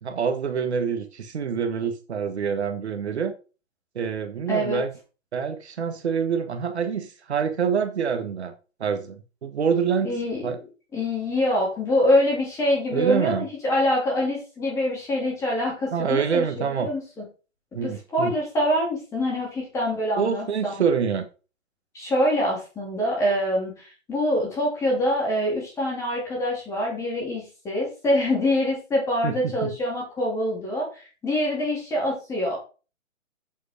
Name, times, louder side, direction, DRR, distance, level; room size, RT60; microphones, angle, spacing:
voice 1, 0.0-3.3 3.9-4.9 5.3-8.5 8.8-10.2 10.4-10.6 12.9-13.5 15.9-16.9 17.7-18.3 20.1-21.2 29.2-29.7, right 6 dB, 60° right, 1.6 m, -26 dB
voice 2, 4.5-4.8 10.0-10.4 10.9-17.0 17.8-20.7 21.9-32.6, left 1 dB, 5° left, 2.8 m, -25 dB
8.3 x 5.8 x 5.1 m
hypercardioid pair, 165°, 38 cm